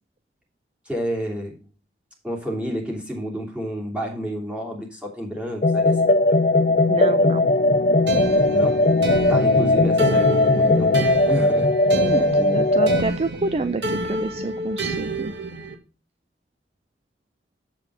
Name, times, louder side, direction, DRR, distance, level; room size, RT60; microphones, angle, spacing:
voice 1, 0.8-1.6 2.2-6.0 8.5-8.9 9.3-10.9 11.3-11.7, equal, 5° right, -2 dB, 2.8 m, -30 dB
sound 1, 5.6-13.0, left 2 dB, 40° left, 0.6 m, -18 dB
sound 2, 5.8-11.0, left 3 dB, 65° left, 0.9 m, -33 dB
voice 2, 6.9-7.4 12.0-15.3, right 3 dB, 35° right, 11 dB, 0.4 m, -28 dB
sound 3, 8.1-15.7, right 1 dB, 85° right, 1.6 m, -29 dB
7.6 x 7.6 x 4.7 m, 0.33 s
head